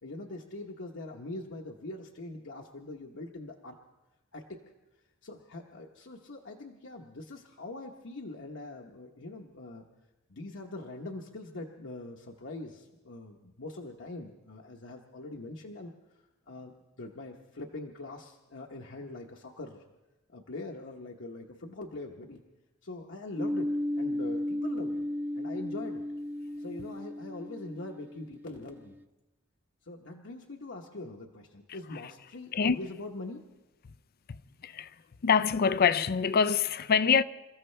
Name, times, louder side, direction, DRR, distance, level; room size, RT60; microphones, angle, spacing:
voice 1, 0.0-3.8 4.3-4.6 5.2-9.8 10.3-15.9 16.5-16.7 17.0-19.8 20.3-22.4 22.8-23.7 24.0-25.1 25.3-26.0 26.6-28.9 29.8-33.4, left 2 dB, 65° left, 1.1 m, -42 dB
sound 1, 23.4-28.9, left 1 dB, 10° right, 0.6 m, -34 dB
voice 2, 34.3-34.9 35.2-37.2, left 6 dB, 50° left, 0.4 m, -25 dB
28.0 x 14.5 x 3.3 m
head